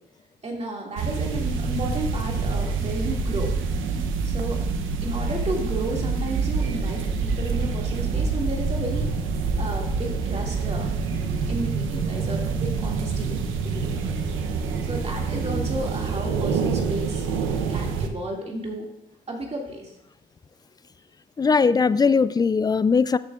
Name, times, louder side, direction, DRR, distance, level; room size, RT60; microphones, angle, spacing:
voice 1, 0.4-3.5 4.2-4.6 5.0-9.1 9.6-10.9 11.5-14.2 14.8-17.3 17.7-18.9 19.3-19.9, right 1 dB, 30° right, 2.2 m, -32 dB
sound 1, 1.0-18.1, right 5 dB, 90° right, 0.8 m, -26 dB
voice 2, 11.1-11.5 21.4-23.2, left 5 dB, 20° left, 0.3 m, -20 dB
13.0 x 7.2 x 2.5 m
cardioid pair, 90°, 20 cm